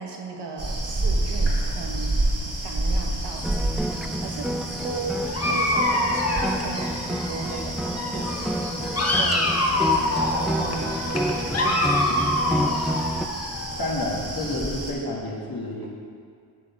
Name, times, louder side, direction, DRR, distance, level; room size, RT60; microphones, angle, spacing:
voice 1, 0.0-2.2 2.6-4.5 4.8-8.4 9.2-11.0 11.4-13.1, right 4 dB, 85° right, 1 dB, 1.3 m, -37 dB
sound 1, 0.6-14.9, right 1 dB, 35° right, 2.4 m, -30 dB
sound 2, 3.4-13.3, right 1 dB, ahead, 0.3 m, -30 dB
Dog, 5.3-7.7 7.9-13.9, left 2 dB, 40° left, 1.2 m, -26 dB
voice 2, 13.8-15.9, left 1 dB, 55° left, -3 dB, 1.8 m, -29 dB
10.5 x 3.9 x 7.2 m, 2.2 s
cardioid pair, 80°, 40 cm